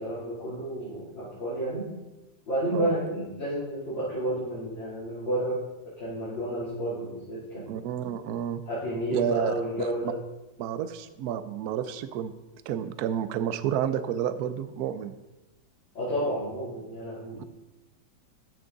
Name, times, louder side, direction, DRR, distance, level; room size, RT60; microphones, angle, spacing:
voice 1, 0.0-1.9 2.5-5.6 6.0-7.9 8.6-10.1 15.9-17.5, right 1 dB, 75° left, -12 dB, 3.8 m, -31 dB
voice 2, 7.7-8.6 9.1-9.9 10.6-12.3 12.7-15.1 17.4-17.5, right 9 dB, 65° right, 12 dB, 1.0 m, -30 dB
13.5 x 6.2 x 3.9 m, 1.0 s
omnidirectional pair, 2.0 m